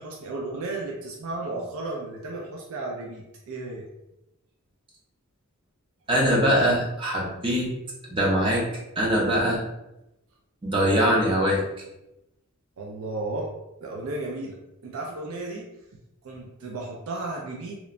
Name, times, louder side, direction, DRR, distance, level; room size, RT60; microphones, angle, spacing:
voice 1, 0.0-3.8 12.8-13.5 13.8-14.6 14.8-15.7 16.2-17.8, right 2 dB, 80° right, -1 dB, 0.4 m, -34 dB
voice 2, 6.1-7.7 8.1-8.6 9.0-9.6 10.6-11.6, equal, 25° right, -4 dB, 0.5 m, -22 dB
2.9 x 2.1 x 2.4 m, 0.90 s
head